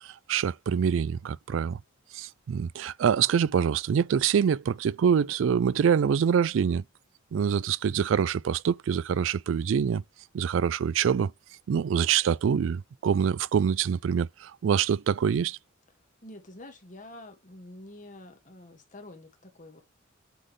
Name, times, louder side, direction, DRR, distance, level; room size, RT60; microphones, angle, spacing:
voice 1, 0.0-1.8 2.1-6.8 7.3-10.0 10.3-11.3 11.7-15.6, right 7 dB, 75° right, 0.3 m, -25 dB
voice 2, 16.2-19.8, left 1 dB, 40° left, 1.7 m, -47 dB
7.9 x 3.8 x 3.1 m
head